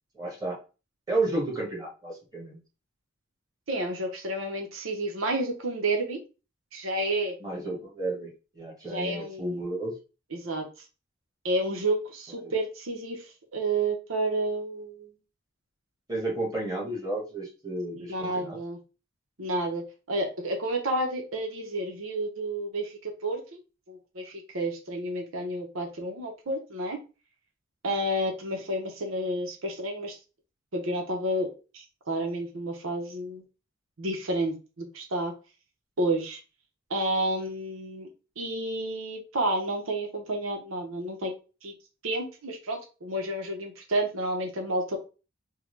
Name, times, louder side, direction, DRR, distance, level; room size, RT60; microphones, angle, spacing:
voice 1, 0.1-0.5 1.1-2.6 7.4-9.9 12.4-12.5 16.1-18.6, right 2 dB, 20° right, -4 dB, 1.5 m, -32 dB
voice 2, 3.7-6.2 6.7-7.3 8.9-9.8 10.3-10.7 11.4-15.1 17.9-18.8 19.4-19.8 20.1-23.6 23.9-27.0 27.8-30.2 30.7-31.5 31.7-33.4 34.0-35.3 36.0-36.4 36.9-38.1 38.4-41.3 41.6-41.7 42.0-45.0, right 1 dB, 80° right, 3 dB, 0.9 m, -30 dB
3.7 x 2.3 x 3.2 m, 0.32 s
head